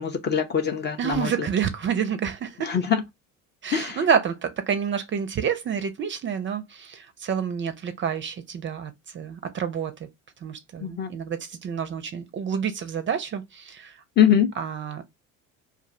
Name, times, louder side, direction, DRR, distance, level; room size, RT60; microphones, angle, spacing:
voice 1, 0.0-1.3 2.6-3.0 3.7-4.0 10.8-11.2 14.2-14.5, left 8 dB, 25° left, 0.4 m, -23 dB
voice 2, 1.0-2.7 3.6-10.1 10.4-14.0 14.6-15.0, right 7 dB, 30° right, 0.4 m, -28 dB
2.4 x 2.1 x 3.5 m
hypercardioid pair, 70°, 41 cm